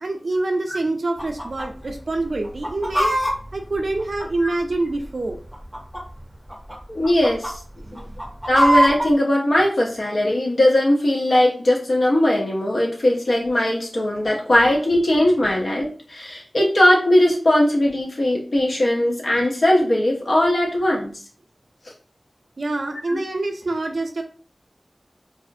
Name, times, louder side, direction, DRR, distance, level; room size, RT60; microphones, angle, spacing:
voice 1, 0.0-3.2 3.5-5.4 7.8-8.2 22.6-24.2, right 2 dB, 80° right, 4 dB, 0.4 m, -26 dB
Chicken rooster, 1.2-1.7 1.9-2.0 2.4-4.7 5.4-6.2 6.5-6.8 7.0-7.5 8.0-9.1, equal, 5° right, 0.5 m, -22 dB
voice 2, 6.9-7.6 7.9-8.0 8.5-21.1 23.1-23.2, left 1 dB, 90° left, -2 dB, 0.7 m, -19 dB
2.4 x 2.0 x 2.5 m, 0.40 s
wide cardioid pair, 45°, 0 cm